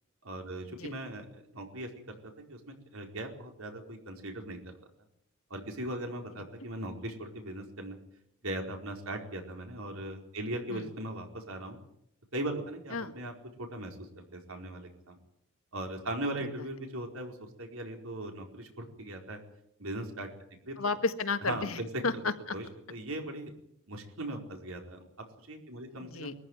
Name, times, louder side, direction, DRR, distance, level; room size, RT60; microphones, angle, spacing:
voice 1, 0.2-2.2 2.5-2.6 2.9-4.7 5.5-8.0 8.4-11.8 12.3-13.3 13.6-15.2 15.7-19.4 19.8-20.3 20.7-20.8 21.5-21.9 22.5-22.6 22.9-23.5 23.9-25.0 25.4-26.3, right 1 dB, 80° right, 3 dB, 4.7 m, -39 dB
voice 2, 20.8-22.6 25.9-26.3, left 4 dB, 75° left, 9 dB, 1.7 m, -33 dB
22.5 x 14.5 x 9.4 m, 0.75 s
head